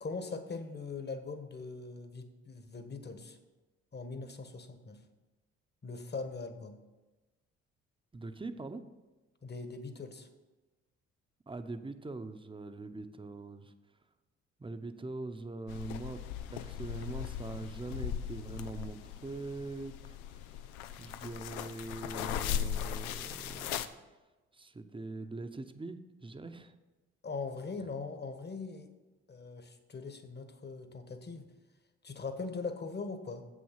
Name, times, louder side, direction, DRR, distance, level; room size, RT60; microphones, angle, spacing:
voice 1, 0.0-3.4 3.9-5.0 5.8-6.8 9.4-10.3 27.2-28.9 29.3-31.5 32.0-33.4, left 4 dB, 35° left, 8 dB, 1.4 m, -41 dB
voice 2, 8.1-8.8 11.5-13.7 14.6-16.2 16.5-20.6 21.0-23.8 24.5-26.7, right 3 dB, 15° right, 8 dB, 0.9 m, -42 dB
sound 1, 15.7-23.9, left 9 dB, 90° left, 0.5 m, -38 dB
7.7 x 6.4 x 7.4 m, 1.2 s
supercardioid pair, 60°, 31 cm